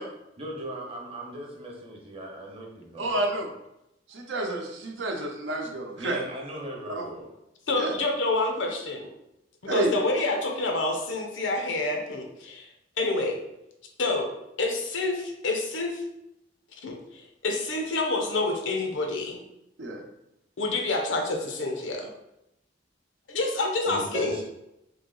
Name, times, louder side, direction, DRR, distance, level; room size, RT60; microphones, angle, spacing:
voice 1, 0.4-3.4 6.0-7.3 23.8-24.4, right 1 dB, 30° right, -1 dB, 0.9 m, -38 dB
voice 2, 3.0-3.5 4.1-6.2 6.9-7.1 7.7-7.9 9.7-9.9 19.8-20.0, right 1 dB, 70° right, 2 dB, 0.7 m, -29 dB
voice 3, 7.7-9.1 9.6-12.7 13.0-13.4 14.0-14.3 14.6-16.0 16.8-19.4 20.6-22.1 23.3-24.3, left 2 dB, 80° left, 3 dB, 0.7 m, -28 dB
3.2 x 2.8 x 3.8 m, 0.86 s
head